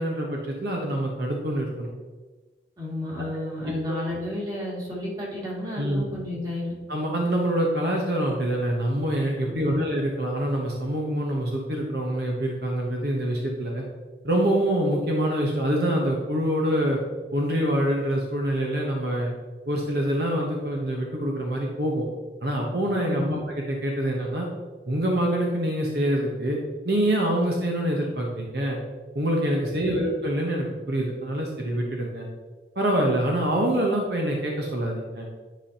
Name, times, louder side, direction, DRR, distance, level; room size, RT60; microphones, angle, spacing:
voice 1, 0.0-1.9 3.3-4.0 5.8-6.0 6.9-13.8 14.2-17.0 17.3-19.3 19.7-22.1 22.4-24.5 24.9-26.6 26.8-28.8 29.1-32.3 32.7-35.3, right 1 dB, 65° right, -1 dB, 1.1 m, -25 dB
voice 2, 2.8-6.7 9.4-9.8 23.0-23.4 29.8-30.1, left 2 dB, 20° right, -6 dB, 2.2 m, -32 dB
10.5 x 5.1 x 2.9 m, 1.3 s
head